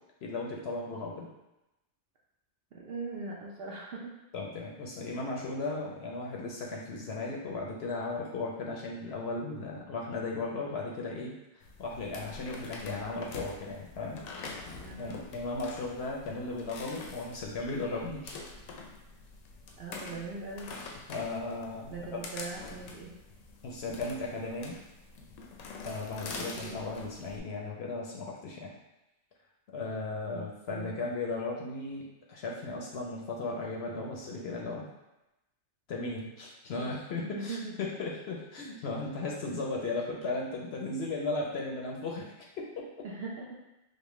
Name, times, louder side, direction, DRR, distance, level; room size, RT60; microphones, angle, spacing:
voice 1, 0.2-1.3 4.3-14.7 15.0-18.4 20.0-20.2 21.1-22.2 23.6-24.8 25.8-28.7 29.7-34.9 35.9-42.9, left 3 dB, 60° left, -2 dB, 0.7 m, -36 dB
voice 2, 2.7-4.2 14.8-15.1 19.8-20.7 21.9-23.1 26.6-26.8 30.3-31.0 36.8-36.9 37.2-37.7 43.0-43.6, right 3 dB, 60° right, -3 dB, 0.6 m, -40 dB
sound 1, 11.6-27.4, left 3 dB, 90° left, 1.0 m, -45 dB
5.3 x 2.1 x 3.0 m, 0.95 s
omnidirectional pair, 1.4 m